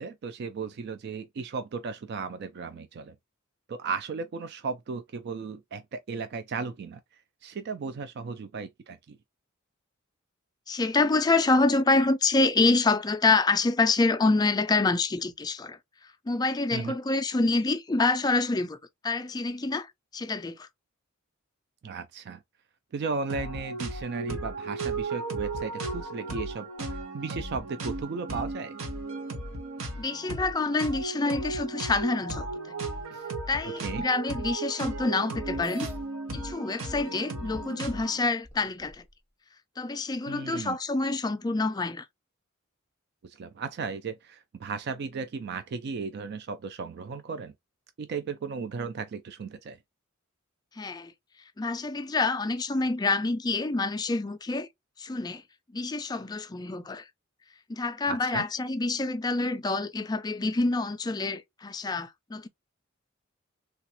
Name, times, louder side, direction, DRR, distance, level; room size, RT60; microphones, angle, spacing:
voice 1, 0.0-3.2 3.7-9.2 16.7-16.9 21.8-22.4 22.9-28.7 33.1-33.2 33.8-34.1 40.3-40.8 43.2-47.5 48.0-49.8 58.1-58.4, right 5 dB, 55° right, 0.3 m, -35 dB
voice 2, 10.7-15.8 16.3-18.8 19.0-20.7 30.0-32.5 33.5-35.9 36.3-39.0 39.8-42.1 50.8-51.1 51.6-54.7 55.0-55.4 55.7-57.1 57.7-62.5, left 3 dB, 20° left, 0.4 m, -27 dB
sound 1, 23.3-38.2, right 2 dB, 85° right, 1.0 m, -35 dB
sound 2, 35.6-36.0 37.0-37.1 37.7-37.8 38.4-39.1, right 3 dB, 10° right, 0.7 m, -44 dB
3.3 x 2.4 x 2.7 m
head